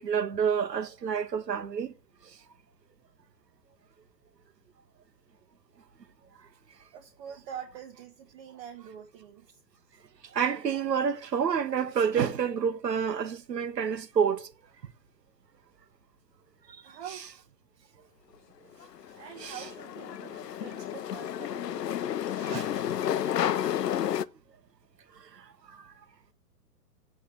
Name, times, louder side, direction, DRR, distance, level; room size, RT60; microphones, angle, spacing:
voice 1, 0.0-1.9 10.3-14.5 19.4-19.6 22.4-22.7, right 7 dB, 80° right, 1.1 m, -28 dB
voice 2, 6.9-9.4 16.8-17.2 19.1-21.9, right 8 dB, 35° right, 1.7 m, -45 dB
sound 1, 18.8-24.2, left 10 dB, 75° left, 0.7 m, -31 dB
9.4 x 3.5 x 7.0 m
hypercardioid pair, 125°, 49 cm